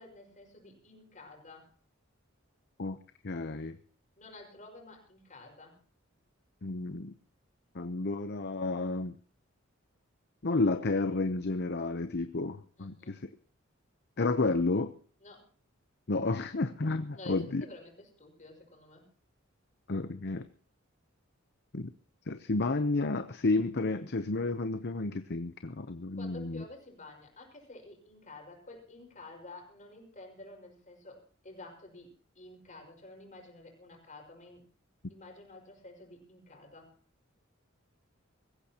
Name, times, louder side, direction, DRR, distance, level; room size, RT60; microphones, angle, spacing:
voice 1, 0.0-1.7 4.2-5.8 12.8-13.2 15.2-15.5 17.1-19.0 26.1-34.6 35.1-36.9, left 2 dB, 40° left, 1 dB, 5.4 m, -50 dB
voice 2, 3.2-3.8 6.6-7.1 7.7-9.2 10.4-13.2 14.2-14.9 16.1-17.6 19.9-20.5 21.7-21.9 22.3-26.6, left 3 dB, 55° left, 9 dB, 0.8 m, -31 dB
24.0 x 15.5 x 3.0 m, 0.42 s
head